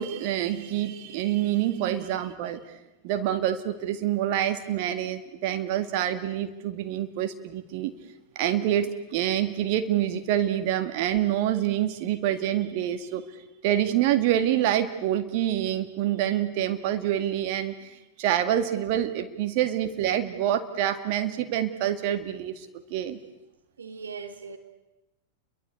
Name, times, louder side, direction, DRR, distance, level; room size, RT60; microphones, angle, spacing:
voice 1, 0.0-2.6 3.0-7.9 8.4-13.2 13.6-17.9 18.2-23.2, right 11 dB, 45° right, 2.0 m, -26 dB
voice 2, 23.8-24.6, right 5 dB, 70° right, 3.5 m, -39 dB
29.0 x 23.5 x 8.3 m
figure-of-eight pair, 90°, 0 cm